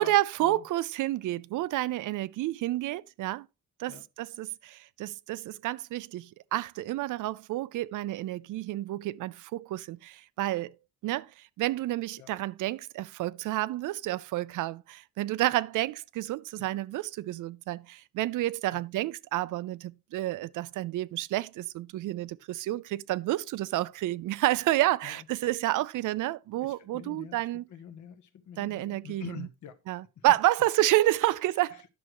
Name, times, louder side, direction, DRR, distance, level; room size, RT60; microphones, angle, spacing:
voice 1, 0.0-3.5 3.8-10.8 11.0-27.7 28.6-29.5 29.9-31.9, right 15 dB, 85° right, 0.5 m, -30 dB
voice 2, 26.6-29.8 30.2-30.3, left 8 dB, 70° left, 1.1 m, -46 dB
10.5 x 6.5 x 3.0 m
cardioid pair, 150°, 30 cm